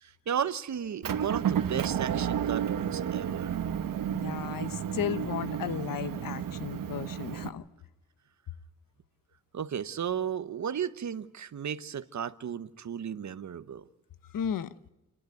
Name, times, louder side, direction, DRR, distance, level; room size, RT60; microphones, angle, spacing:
voice 1, 0.0-3.6 9.5-13.9, right 8 dB, 60° right, 1.1 m, -34 dB
Motor vehicle (road) / Engine, 1.0-7.5, right 9 dB, 80° right, 1.5 m, -31 dB
voice 2, 4.1-7.6 14.3-14.7, left 9 dB, 80° left, 1.0 m, -34 dB
29.0 x 11.5 x 9.3 m
cardioid pair, 80°, 33 cm